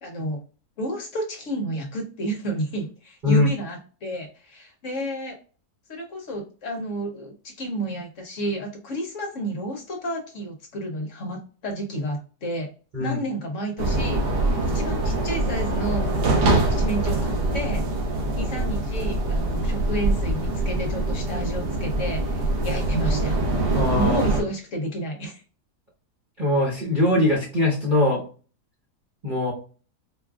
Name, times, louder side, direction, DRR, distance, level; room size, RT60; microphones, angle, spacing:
voice 1, 0.0-0.4 0.8-5.4 5.9-12.7 13.0-14.2 14.7-16.1 16.6-17.8 18.3-25.4, right 1 dB, 60° left, 2 dB, 1.0 m, -31 dB
sound 1, 13.8-24.4, right 2 dB, 85° right, 1.4 m, -24 dB
voice 2, 23.7-24.2 26.4-28.2 29.2-29.5, left 2 dB, 35° right, -6 dB, 1.0 m, -21 dB
4.5 x 2.4 x 2.3 m, 0.37 s
omnidirectional pair, 1.7 m